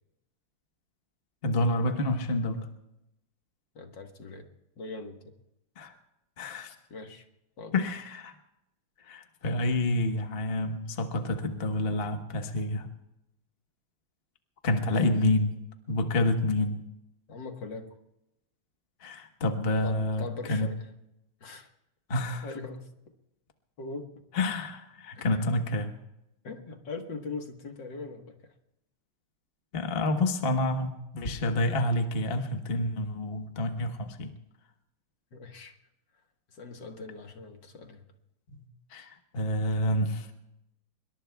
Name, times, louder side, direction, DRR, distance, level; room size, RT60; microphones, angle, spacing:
voice 1, 1.4-2.7 5.8-5.9 6.4-6.7 7.7-8.3 9.0-12.9 14.6-15.6 15.9-16.8 19.0-20.7 22.1-22.5 24.3-25.9 29.7-34.3 38.5-38.6 38.9-40.3, left 1 dB, 35° left, 5 dB, 1.1 m, -28 dB
voice 2, 3.8-4.5 4.8-5.4 6.9-7.3 7.6-7.7 14.9-15.2 17.3-17.9 19.8-20.9 21.4-21.7 22.4-22.9 23.8-24.2 25.1-25.4 26.4-28.5 35.3-35.8 36.5-38.0, left 3 dB, 60° left, 4 dB, 2.1 m, -41 dB
26.0 x 22.5 x 2.3 m, 0.86 s
omnidirectional pair, 2.4 m